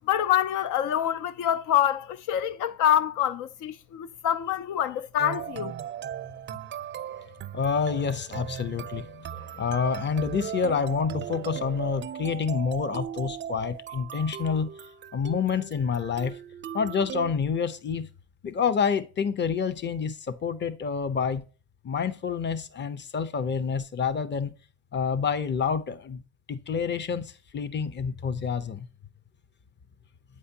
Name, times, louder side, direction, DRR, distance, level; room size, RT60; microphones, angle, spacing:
voice 1, 0.1-5.7, left 11 dB, 85° left, 0.5 m, -26 dB
sound 1, 5.2-17.3, right 10 dB, 40° right, 0.4 m, -38 dB
voice 2, 7.5-14.7 15.1-16.4 16.7-18.1 18.4-21.4 21.8-24.5 24.9-26.2 26.5-28.9, left 6 dB, 35° left, 0.7 m, -28 dB
8.1 x 4.9 x 2.7 m
cardioid pair, 90°, 30 cm